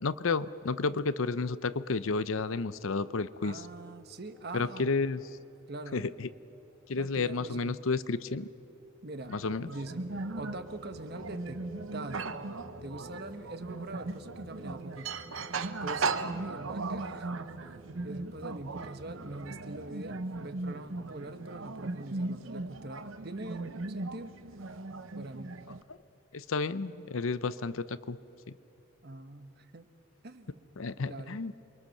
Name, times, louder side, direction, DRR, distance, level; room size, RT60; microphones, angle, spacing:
voice 1, 0.0-3.6 4.5-5.2 5.9-6.3 6.9-8.5 9.3-9.7 26.3-28.2 30.8-31.5, left 4 dB, 80° left, 15 dB, 0.7 m, -31 dB
voice 2, 3.4-4.9 5.7-6.0 7.0-7.8 9.0-9.4 9.7-11.6 11.9-12.3 12.8-15.2 15.8-17.3 18.0-24.3 25.1-25.6 29.0-29.9 30.2-30.7 31.1-31.5, right 2 dB, 50° right, 9 dB, 1.3 m, -43 dB
sound 1, 3.8-7.0 9.5-19.9, equal, 10° left, 2.2 m, -52 dB
sound 2, 9.2-25.8, right 3 dB, 75° right, 0.9 m, -38 dB
28.5 x 23.0 x 6.6 m, 2.9 s
head